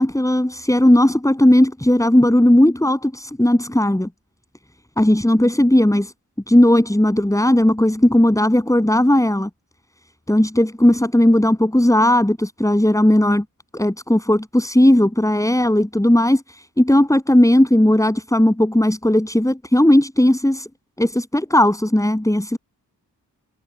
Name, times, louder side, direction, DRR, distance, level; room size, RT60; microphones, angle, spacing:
voice 1, 0.0-4.1 5.0-6.1 6.5-9.5 10.3-13.4 13.7-20.7 21.0-22.6, left 1 dB, 10° left, 7.6 m, -16 dB
cardioid pair, 65°, 37 cm